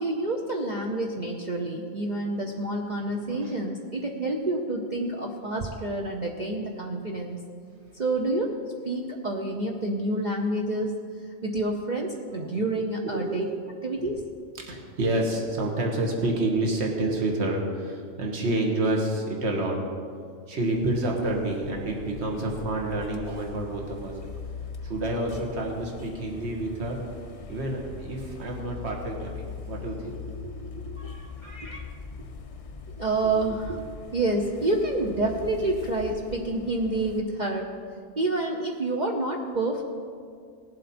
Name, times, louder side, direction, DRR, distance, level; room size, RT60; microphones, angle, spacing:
voice 1, 0.0-7.4 8.0-11.0 11.4-13.4 13.8-14.2 30.2-31.9 33.0-33.8 34.1-37.7 38.2-39.8, right 2 dB, 40° right, 0 dB, 0.8 m, -28 dB
voice 2, 13.0-13.5 14.6-19.8 20.5-24.1 24.8-27.0 27.5-30.2, right 2 dB, 55° right, 0 dB, 1.8 m, -28 dB
sound 1, 21.2-37.2, left 5 dB, 45° left, 0.4 m, -41 dB
18.5 x 7.8 x 4.3 m, 2.2 s
omnidirectional pair, 1.3 m